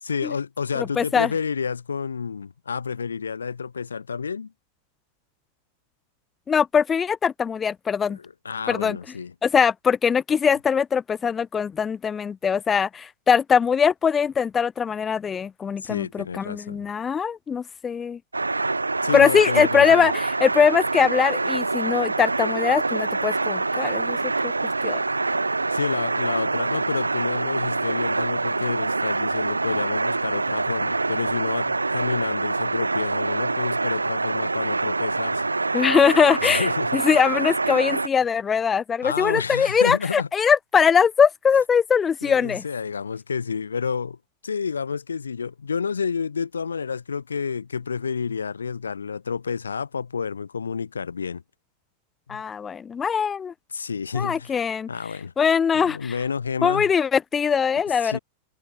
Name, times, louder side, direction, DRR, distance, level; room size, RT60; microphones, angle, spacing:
voice 1, 0.0-4.5 8.1-9.3 15.8-16.9 19.0-20.1 25.7-35.5 36.4-37.0 39.0-40.3 42.2-44.2 44.4-51.4 52.3-52.4 53.7-54.6 54.9-55.3 55.7-56.9 58.0-58.2, left 6 dB, 75° left, 1.6 m, -30 dB
voice 2, 0.7-1.3 6.5-8.2 8.7-9.0 9.4-18.2 19.1-24.2 24.4-24.5 24.8-25.0 35.7-42.6 52.3-53.5 54.1-54.9 55.4-56.1 56.6-58.2, left 6 dB, 20° left, 1.7 m, -21 dB
sound 1, 18.3-38.1, right 3 dB, 80° right, 1.2 m, -25 dB
figure-of-eight pair, 90°, 0 cm